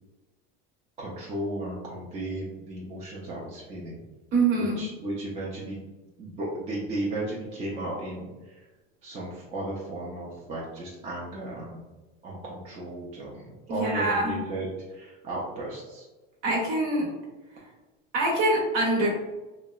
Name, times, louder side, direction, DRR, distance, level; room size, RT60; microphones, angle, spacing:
voice 1, 1.0-4.0 4.5-5.9 6.2-8.5 9.0-11.8 12.2-16.1, right 1 dB, 20° right, -5 dB, 0.3 m, -35 dB
voice 2, 4.3-4.8 13.7-14.4 16.4-17.1 18.1-19.1, right 2 dB, 60° right, -2 dB, 1.1 m, -24 dB
2.7 x 2.1 x 2.3 m, 1.2 s
supercardioid pair, 140°, 32 cm